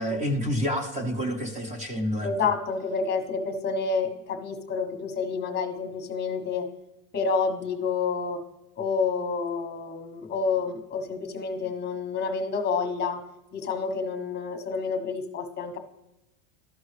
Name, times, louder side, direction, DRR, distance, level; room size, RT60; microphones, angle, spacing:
voice 1, 0.0-2.3, equal, 15° right, 4 dB, 1.0 m, -28 dB
voice 2, 2.2-6.7 7.1-8.4 8.8-13.2 13.5-15.8, left 5 dB, 20° left, 6 dB, 1.2 m, -29 dB
13.0 x 5.3 x 3.2 m, 0.96 s
supercardioid pair, 150°, 46 cm